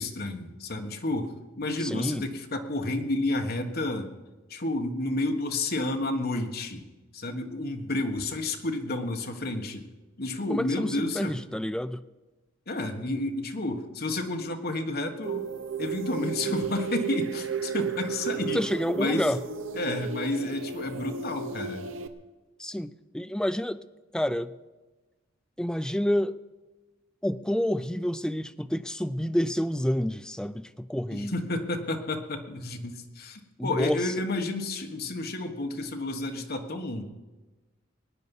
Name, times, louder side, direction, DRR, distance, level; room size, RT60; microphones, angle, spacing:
voice 1, 0.0-4.1 4.5-6.8 7.1-9.8 10.2-11.4 12.7-15.5 15.8-18.6 18.9-19.3 19.7-21.8 31.1-37.0, left 2 dB, 50° left, 4 dB, 1.5 m, -31 dB
voice 2, 1.8-2.3 10.5-12.0 18.5-19.4 22.6-23.8 24.1-24.5 25.6-26.4 27.2-31.4 33.6-34.1, equal, 5° left, 12 dB, 0.4 m, -29 dB
sound 1, 15.2-22.1, right 6 dB, 75° right, 0.9 m, -33 dB
21.5 x 9.6 x 5.5 m, 1.2 s
head